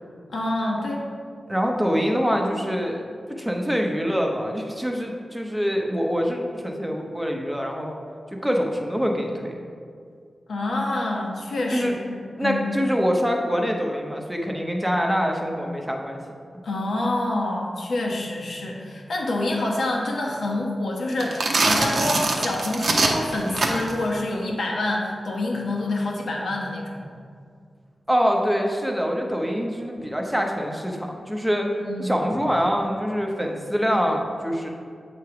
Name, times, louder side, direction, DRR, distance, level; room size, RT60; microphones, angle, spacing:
voice 1, 0.3-1.1 10.5-12.6 16.6-27.1 31.8-32.1, left 2 dB, 80° left, -2 dB, 1.2 m, -27 dB
voice 2, 1.5-8.0 8.4-9.6 11.7-11.9 12.4-16.2 28.1-31.7 32.0-34.7, equal, ahead, 1 dB, 0.7 m, -25 dB
sound 1, 21.1-24.0, right 2 dB, 55° right, 0.8 m, -23 dB
8.0 x 3.2 x 5.8 m, 2.2 s
wide cardioid pair, 165°, 0 cm